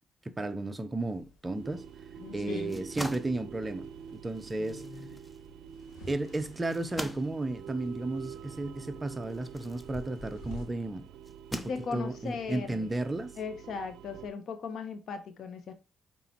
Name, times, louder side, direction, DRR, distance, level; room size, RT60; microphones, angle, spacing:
voice 1, 0.2-1.8 2.3-4.8 6.1-11.1 11.5-13.3, right 2 dB, 20° right, 0.8 m, -34 dB
sound 1, 1.0-10.6, left 3 dB, 90° left, 3.0 m, -50 dB
sound 2, 1.5-14.3, right 8 dB, 75° right, 0.5 m, -47 dB
voice 2, 2.2-2.8 4.6-5.1 11.6-12.9 13.4-15.7, left 5 dB, 65° left, 1.4 m, -38 dB
sound 3, 2.6-10.6 11.2-12.3, left 1 dB, 5° left, 0.9 m, -45 dB
8.2 x 4.1 x 4.4 m
cardioid pair, 90°, 0 cm